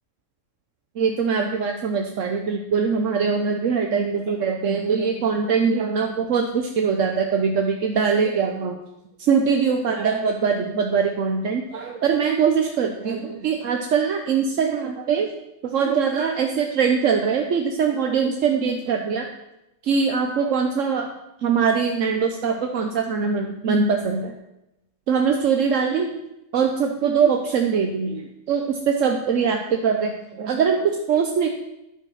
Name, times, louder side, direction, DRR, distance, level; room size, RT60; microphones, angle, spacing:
voice 1, 1.0-8.8 9.2-15.3 15.6-19.3 19.8-21.1 21.4-24.3 25.1-26.1 26.5-31.5, right 6 dB, 75° right, 4 dB, 1.3 m, -22 dB
10.0 x 8.8 x 6.3 m, 0.89 s
omnidirectional pair, 1.3 m